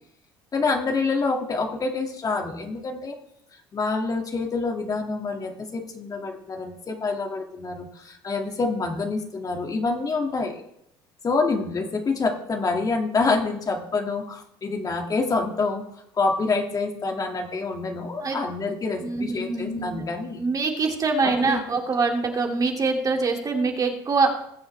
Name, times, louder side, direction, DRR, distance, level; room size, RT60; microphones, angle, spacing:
voice 1, 0.5-3.2 3.7-10.6 11.2-15.8 16.1-20.4 21.4-21.8, left 3 dB, 35° left, 2 dB, 2.2 m, -27 dB
voice 2, 19.0-24.3, right 4 dB, 35° right, 2 dB, 2.5 m, -24 dB
20.0 x 7.1 x 3.4 m, 0.76 s
supercardioid pair, 80°, 10 cm